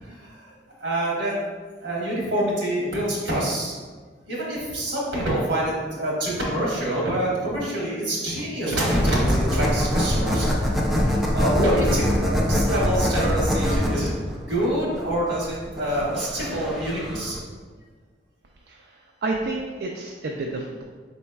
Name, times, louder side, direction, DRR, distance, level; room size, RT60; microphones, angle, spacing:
voice 1, 0.0-0.5 0.8-1.3 1.8-3.7 4.3-14.1 14.5-17.4, right 1 dB, 80° right, -5 dB, 1.4 m, -26 dB
sound 1, 8.9-17.4, equal, ahead, 0.4 m, -24 dB
voice 2, 19.2-20.8, right 2 dB, 65° right, 0 dB, 0.3 m, -29 dB
4.6 x 4.1 x 2.2 m, 1.5 s
head